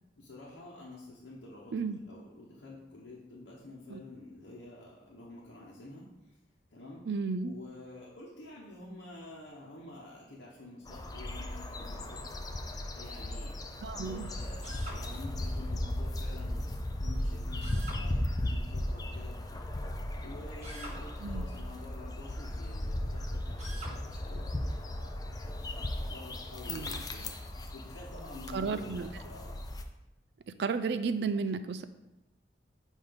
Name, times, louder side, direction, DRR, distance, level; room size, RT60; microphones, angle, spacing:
voice 1, 0.2-6.4 6.7-7.1 7.4-12.3 12.9-13.5 14.0-16.7 17.0-19.4 20.2-27.3 27.6-29.5, left 2 dB, 80° left, -6 dB, 1.0 m, -49 dB
voice 2, 7.1-7.6 13.8-14.3 21.2-21.4 26.7-27.0 28.5-29.1 30.5-31.8, right 5 dB, 60° right, 11 dB, 0.4 m, -33 dB
sound 1, 10.9-29.8, left 1 dB, 20° left, 0.4 m, -36 dB
Drill, 14.6-15.0 17.6-18.0 20.6-21.0 23.6-24.0, right 1 dB, 35° right, 1.1 m, -45 dB
7.7 x 2.7 x 5.1 m, 0.96 s
head